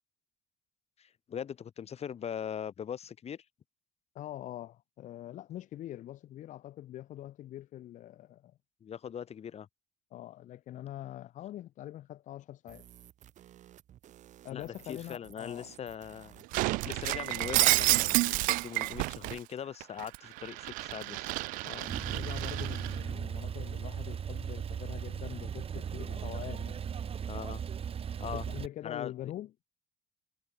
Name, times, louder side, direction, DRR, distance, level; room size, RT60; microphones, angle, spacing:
voice 1, 1.0-3.4 8.8-9.7 14.5-16.4 16.8-21.3 27.3-27.6 28.2-28.4 28.8-29.1, left 8 dB, 50° left, 4.5 m, -41 dB
voice 2, 4.1-8.6 10.1-12.9 14.4-15.7 21.6-26.9 28.2-29.5, left 13 dB, 70° left, 1.6 m, -44 dB
sound 1, 12.7-17.9, right 11 dB, 65° right, 5.6 m, -55 dB
Shatter, 16.5-19.4 19.8-23.0, right 22 dB, 90° right, 1.1 m, -30 dB
Male speech man speaking / Car / Idling, 21.9-28.7, right 7 dB, 45° right, 1.7 m, -37 dB
cardioid pair, 85°, 13 cm